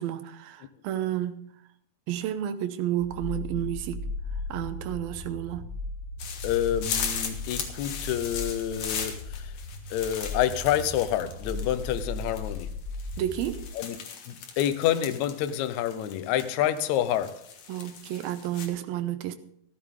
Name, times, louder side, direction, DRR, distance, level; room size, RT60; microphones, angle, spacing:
voice 1, 0.0-1.5 2.1-4.1 4.5-5.7 13.2-13.6 17.7-19.4, right 12 dB, 85° right, 10 dB, 2.7 m, -31 dB
sound 1, 3.0-13.6, left 3 dB, 35° left, 1.1 m, -37 dB
sound 2, 6.2-18.7, left 7 dB, 60° left, 2.7 m, -38 dB
voice 2, 6.4-9.5 9.9-12.7 13.8-14.0 14.3-17.4, left 11 dB, 80° left, 11 dB, 1.7 m, -28 dB
14.0 x 13.5 x 3.7 m, 0.67 s
omnidirectional pair, 4.2 m